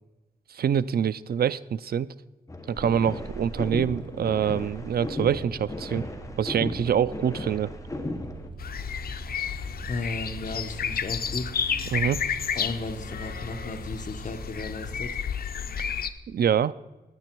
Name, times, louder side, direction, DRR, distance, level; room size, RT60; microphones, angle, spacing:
voice 1, 0.5-2.1 2.7-6.1 6.4-7.7 11.9-12.2 16.3-16.7, right 8 dB, 80° right, 17 dB, 0.4 m, -25 dB
sound 1, 2.5-8.5, left 1 dB, 20° left, 1.3 m, -36 dB
sound 2, 2.7-15.0, right 3 dB, 30° right, 1.2 m, -43 dB
sound 3, 8.6-16.1, left 7 dB, 75° left, 0.6 m, -31 dB
voice 2, 9.9-11.5 12.6-15.2, left 3 dB, 55° left, 6 dB, 1.0 m, -35 dB
16.0 x 9.7 x 4.6 m, 1.1 s
wide cardioid pair, 100°, 16 cm